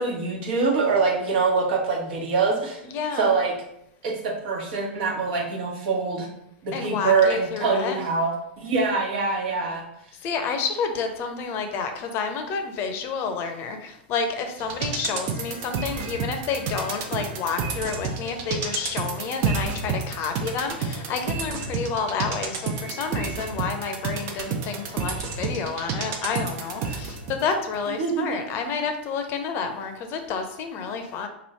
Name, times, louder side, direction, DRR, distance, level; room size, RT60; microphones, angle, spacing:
voice 1, 0.0-2.8 3.2-3.5 4.0-6.3 6.6-9.8 28.0-28.4, right 4 dB, 65° right, -1 dB, 1.2 m, -24 dB
voice 2, 2.9-3.3 6.7-8.0 10.2-31.3, left 5 dB, 45° left, 6 dB, 0.6 m, -29 dB
sound 1, 14.6-27.4 27.7-27.8, right 5 dB, 50° right, 0.7 m, -30 dB
3.1 x 2.6 x 4.2 m, 0.78 s
hypercardioid pair, 105°, 6 cm